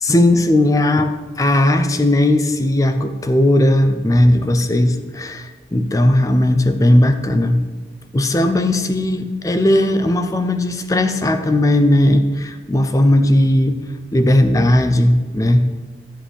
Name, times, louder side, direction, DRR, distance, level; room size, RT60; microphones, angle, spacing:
voice 1, 0.0-7.6 8.1-13.8 14.1-15.7, left 1 dB, 20° left, 8 dB, 0.4 m, -16 dB
12.0 x 7.5 x 3.4 m, 1.4 s
head